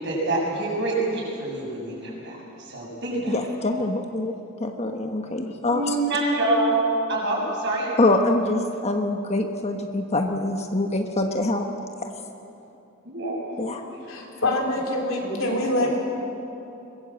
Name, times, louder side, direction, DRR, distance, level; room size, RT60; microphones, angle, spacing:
voice 1, 0.0-3.5 5.7-7.9 13.0-14.0 14.4-14.6 15.2-15.9, right 2 dB, 60° right, -3 dB, 7.8 m, -27 dB
voice 2, 3.3-6.0 8.0-11.7 12.0-12.1 13.6-13.8, left 2 dB, 30° left, 4 dB, 1.2 m, -25 dB
voice 3, 14.1-16.0, left 1 dB, 70° left, 0 dB, 4.2 m, -25 dB
23.0 x 20.5 x 7.8 m, 2.9 s
head